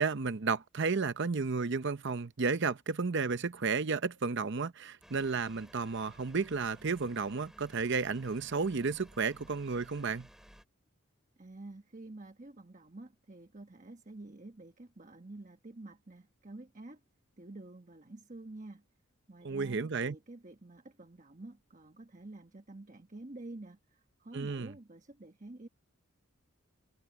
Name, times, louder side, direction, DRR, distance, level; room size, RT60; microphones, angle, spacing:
voice 1, 0.0-10.3 19.4-20.1 24.3-24.7, right 4 dB, 55° right, 0.7 m, -32 dB
sound 1, 5.0-10.6, equal, ahead, 3.3 m, -57 dB
voice 2, 11.4-17.0 17.4-18.8 19.3-25.7, right 2 dB, 35° right, 1.2 m, -49 dB
head